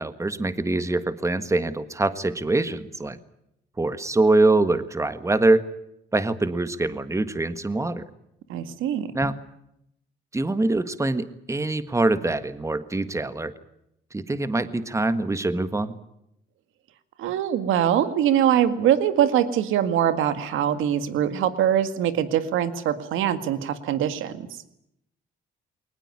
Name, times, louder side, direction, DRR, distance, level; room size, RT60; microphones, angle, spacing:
voice 1, 0.0-3.2 3.8-5.7 6.1-8.0 9.1-9.3 10.3-13.5 14.1-16.0, right 2 dB, 15° right, 12 dB, 1.5 m, -24 dB
voice 2, 8.5-9.1 17.2-24.5, right 10 dB, 85° right, 11 dB, 2.0 m, -23 dB
21.5 x 19.5 x 9.7 m, 0.78 s
cardioid pair, 90°, 20 cm